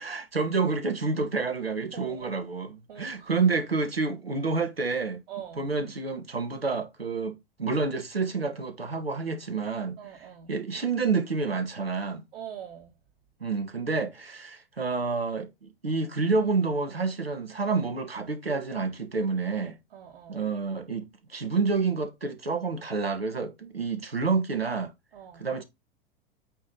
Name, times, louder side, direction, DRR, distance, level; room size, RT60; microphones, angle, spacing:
voice 1, 0.0-5.2 5.6-10.0 10.5-12.2 13.4-19.8 20.3-24.9 25.4-25.6, right 4 dB, 90° right, 1.2 m, -29 dB
voice 2, 1.9-2.4 2.9-3.5 5.3-5.7 10.0-10.5 12.3-13.0 19.9-20.4 25.1-25.5, right 9 dB, 65° right, 1.5 m, -43 dB
8.5 x 3.1 x 3.9 m
figure-of-eight pair, 90°, 29 cm